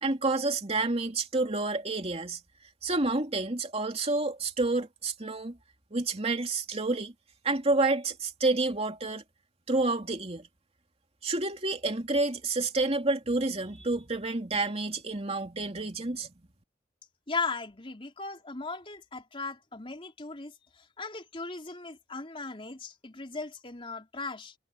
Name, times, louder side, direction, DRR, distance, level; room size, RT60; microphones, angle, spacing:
voice 1, 0.0-2.4 2.8-5.6 5.9-7.1 7.4-9.2 9.7-10.5 11.2-16.3, right 2 dB, 35° right, 2.8 m, -29 dB
voice 2, 17.3-24.5, left 3 dB, 30° left, 3.5 m, -37 dB
head